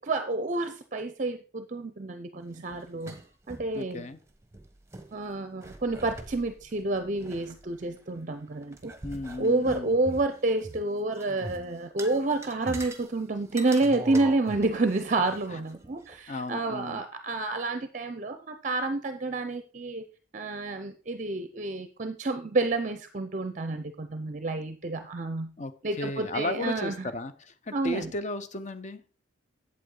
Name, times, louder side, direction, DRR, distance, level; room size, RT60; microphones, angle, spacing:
voice 1, 0.0-3.2 3.5-4.1 5.1-8.9 9.4-20.0 20.3-25.5 25.8-27.1 27.7-28.1, right 2 dB, 40° right, 9 dB, 0.5 m, -29 dB
sound 1, 2.6-3.7 4.1-4.2 4.4-5.1 5.6-8.2 8.6-10.8 11.1-11.6 12.0-13.1 13.5-16.2, right 2 dB, 15° right, 1.0 m, -42 dB
voice 2, 3.7-4.2 9.0-9.9 15.5-15.6 16.3-17.0 25.6-25.7 26.0-29.0, left 2 dB, 35° left, 11 dB, 0.7 m, -34 dB
8.3 x 7.9 x 3.9 m, 0.37 s
head